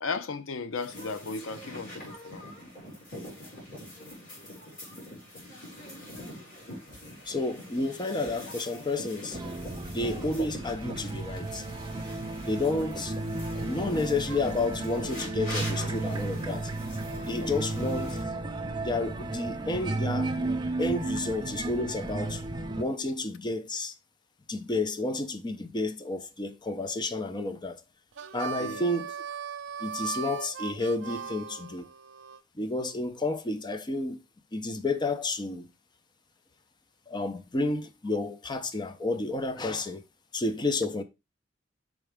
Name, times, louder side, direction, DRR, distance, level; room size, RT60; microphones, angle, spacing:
voice 1, 0.0-2.4 17.4-17.6 28.6-28.8, left 4 dB, 85° left, 0.6 m, -35 dB
sound 1, 0.8-18.2, equal, 45° left, 4.4 m, -43 dB
voice 2, 7.3-9.4 9.8-11.6 12.4-13.1 13.7-16.7 17.3-18.2 18.8-20.5 20.8-22.4 22.8-23.9 24.5-27.8 28.3-29.2 29.8-31.9 32.6-34.2 34.5-35.7 37.1-40.0 40.3-41.0, left 2 dB, 20° left, 0.5 m, -31 dB
sound 2, 9.3-22.8, right 2 dB, 25° right, 0.6 m, -33 dB
Harmonica, 28.1-32.4, right 7 dB, 70° right, 0.5 m, -38 dB
6.2 x 4.8 x 3.4 m
head